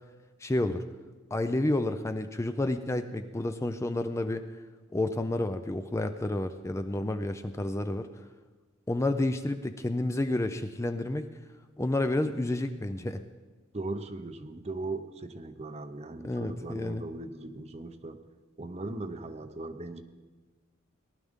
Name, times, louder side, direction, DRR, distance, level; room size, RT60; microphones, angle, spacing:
voice 1, 0.4-0.8 1.3-4.5 4.9-8.1 8.9-11.3 11.8-13.2 16.2-17.0, left 1 dB, 15° left, 8 dB, 0.4 m, -30 dB
voice 2, 13.7-18.2 18.6-20.0, right 2 dB, 30° right, 10 dB, 0.7 m, -38 dB
18.5 x 11.5 x 3.7 m, 1.3 s
head